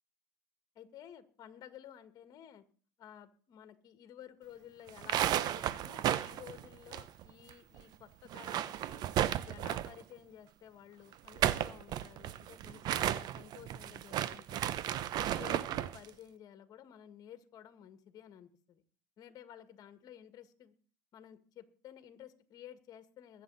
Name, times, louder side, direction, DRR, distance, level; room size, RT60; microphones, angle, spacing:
voice 1, 0.8-2.6 3.0-9.0 9.4-14.8 15.1-18.8 19.2-20.7 21.1-23.4, left 10 dB, 45° left, 10 dB, 1.8 m, -53 dB
sound 1, 4.9-7.5 7.8-7.9 8.2-10.0 11.1-16.0, right 11 dB, 50° right, 0.8 m, -34 dB
22.0 x 8.2 x 4.1 m, 0.42 s
supercardioid pair, 115°, 9 cm